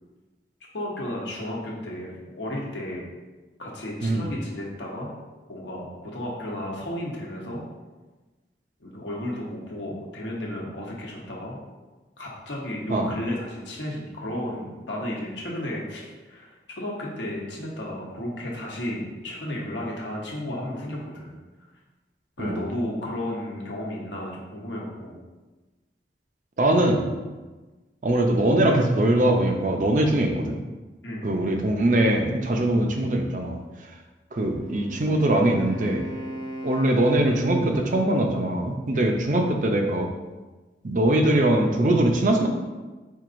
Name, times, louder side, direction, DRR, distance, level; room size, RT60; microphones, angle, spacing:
voice 1, 0.7-3.1 3.6-5.1 5.5-7.7 8.8-11.6 12.2-21.3 22.4-25.2 31.0-31.3 38.9-39.2, left 1 dB, 90° left, -2 dB, 1.0 m, -33 dB
voice 2, 26.6-27.0 28.0-30.6 31.2-33.6 34.3-36.1 36.6-40.1 40.8-42.5, right 1 dB, 45° right, 3 dB, 0.5 m, -22 dB
Wind instrument woodwind instrument, 34.3-38.2, right 1 dB, 25° left, 0.7 m, -37 dB
4.5 x 3.9 x 2.5 m, 1.2 s
head